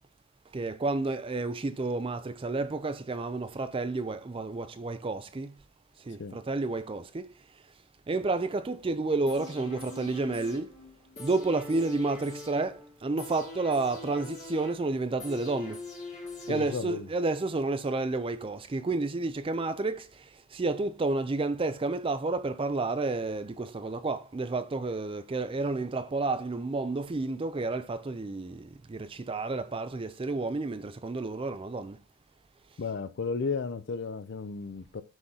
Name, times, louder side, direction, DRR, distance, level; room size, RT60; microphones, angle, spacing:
voice 1, 0.5-5.5 6.0-7.4 8.1-10.8 11.2-15.8 16.5-32.0, right 3 dB, 25° right, 0.4 m, -31 dB
sound 1, 9.3-17.2 17.6-17.7, left 2 dB, 35° left, 1.7 m, -43 dB
voice 2, 16.5-17.1 32.8-35.0, left 4 dB, 50° left, 0.4 m, -34 dB
6.2 x 3.7 x 5.6 m
head